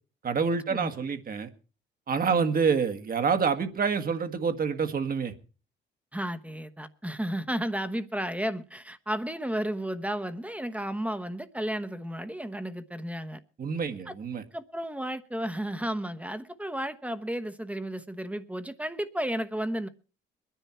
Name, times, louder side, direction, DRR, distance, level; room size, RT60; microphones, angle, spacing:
voice 1, 0.2-1.5 2.1-5.3 13.6-14.4, right 5 dB, 45° right, 1.7 m, -27 dB
voice 2, 6.1-13.4 14.1-14.2 14.5-19.9, right 1 dB, 5° right, 1.1 m, -33 dB
22.0 x 10.0 x 4.4 m
cardioid pair, 90°, 20 cm